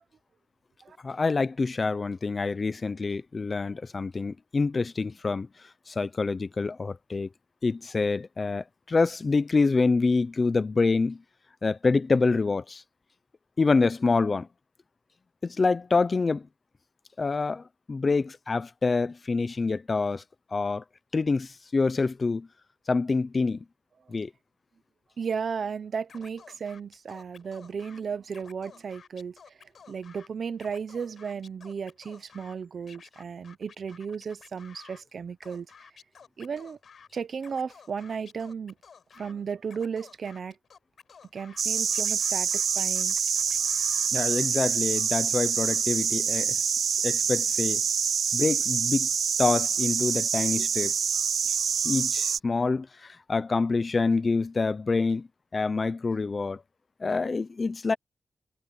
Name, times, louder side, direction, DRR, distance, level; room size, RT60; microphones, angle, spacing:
voice 1, 1.0-5.5 5.9-7.3 7.6-11.2 11.6-12.8 13.6-14.5 15.4-16.5 17.2-20.2 20.5-20.8 21.1-22.5 22.9-23.6 24.1-24.3 44.1-46.6 47.0-47.8 48.3-49.1 49.4-50.9 51.8-56.6 57.0-57.9, left 4 dB, 35° left, 0.6 m, -26 dB
voice 2, 25.2-29.5 29.9-35.7 36.4-36.8 37.1-38.7 39.2-40.5 41.3-43.2, right 6 dB, 60° right, 0.8 m, -35 dB
Scratching (performance technique), 26.1-28.0 28.3-30.3 30.5-32.5 32.9-35.0 35.4-37.1 37.4-39.3 39.7-41.6 41.9-44.1, left 6 dB, 70° left, 5.6 m, -52 dB
sound 1, 41.6-52.4, right 7 dB, 75° right, 0.3 m, -26 dB
wide cardioid pair, 170°, 0 cm